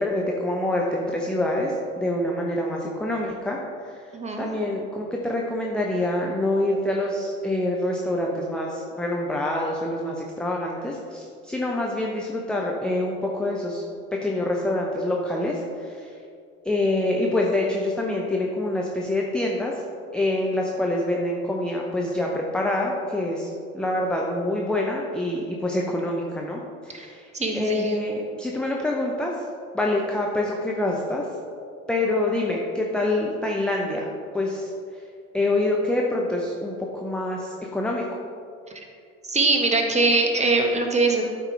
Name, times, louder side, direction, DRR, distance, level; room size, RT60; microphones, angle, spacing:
voice 1, 0.0-3.6 3.8-13.8 14.1-16.1 16.6-19.8 20.1-29.4 29.7-31.3 31.9-34.1 34.3-35.0 35.3-38.1, left 1 dB, ahead, -2 dB, 0.6 m, -26 dB
voice 2, 4.1-4.5 26.9-27.1 27.3-27.9 38.7-38.8 39.3-41.2, right 3 dB, 15° right, 2 dB, 1.1 m, -22 dB
12.5 x 4.5 x 3.2 m, 2.4 s
figure-of-eight pair, 65°, 43 cm